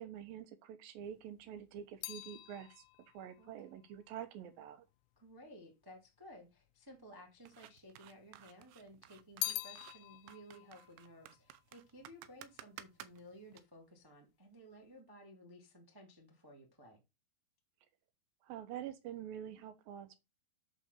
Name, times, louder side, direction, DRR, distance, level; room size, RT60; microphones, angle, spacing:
voice 1, 0.0-2.8 3.1-4.8 18.4-20.2, right 10 dB, 70° right, 2.5 m, -47 dB
sound 1, 1.1-5.5 6.3-7.1 7.4-8.5 8.8-12.4 12.6-13.2, left 19 dB, 85° left, 2.8 m, -46 dB
voice 2, 5.1-17.0, equal, 20° right, 0.6 m, -56 dB
sound 2, 7.5-13.6, right 13 dB, 85° right, 2.9 m, -55 dB
8.6 x 4.2 x 6.8 m
omnidirectional pair, 4.9 m